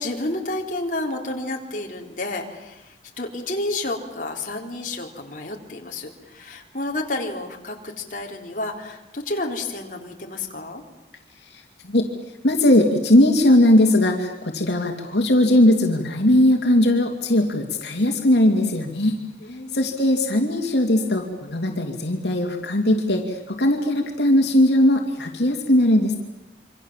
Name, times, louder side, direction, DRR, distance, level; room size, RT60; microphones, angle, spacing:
voice 1, 0.0-10.8 19.4-19.9, left 2 dB, 50° left, 1 dB, 3.7 m, -30 dB
voice 2, 12.4-19.1 19.7-26.2, left 1 dB, 75° left, 2 dB, 2.8 m, -19 dB
27.0 x 25.5 x 7.5 m, 0.98 s
head